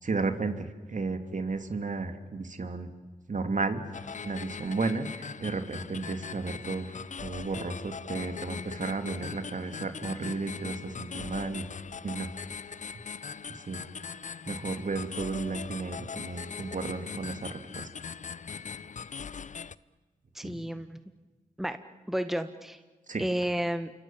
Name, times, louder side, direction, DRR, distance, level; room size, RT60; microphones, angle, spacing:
voice 1, 0.0-2.9 3.3-3.8 4.2-11.7 12.0-12.3 13.7-13.9 14.5-17.9 20.4-20.6 23.1-23.2, right 3 dB, 50° right, 8 dB, 2.6 m, -33 dB
sound 1, 3.9-19.7, left 6 dB, 50° left, 0.7 m, -41 dB
voice 2, 20.3-21.0 21.6-21.8 22.1-22.8 23.2-23.9, equal, ahead, 10 dB, 1.6 m, -31 dB
28.5 x 25.0 x 7.4 m, 1.3 s
supercardioid pair, 40°, 17 cm